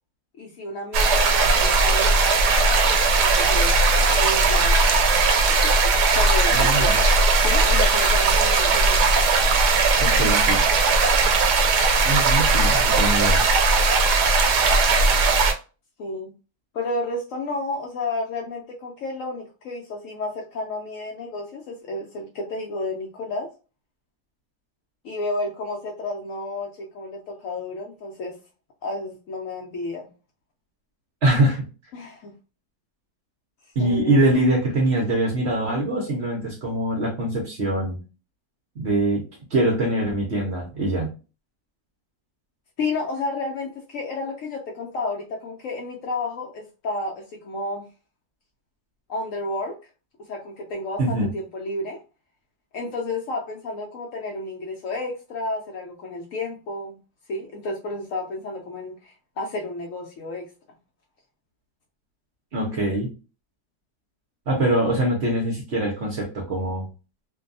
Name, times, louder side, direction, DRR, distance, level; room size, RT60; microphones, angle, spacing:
voice 1, 0.4-3.8 4.1-5.1 5.8-7.1 7.4-9.0 16.0-16.3 16.7-23.5 25.0-28.4 28.8-30.1 31.9-32.3 33.8-34.3 42.8-47.8 49.1-49.8 50.3-52.0 52.7-57.0 57.3-60.5, left 2 dB, 70° left, 0 dB, 0.8 m, -31 dB
sound 1, 0.9-15.5, right 3 dB, 85° right, 1.2 m, -18 dB
voice 2, 6.5-7.0 10.0-10.6 12.0-13.5 31.2-31.6 33.8-38.0 38.8-39.2 39.5-41.1 51.0-51.3 62.5-63.1 64.5-66.9, right 1 dB, 55° right, 0 dB, 0.8 m, -23 dB
2.6 x 2.2 x 2.5 m, 0.33 s
omnidirectional pair, 1.7 m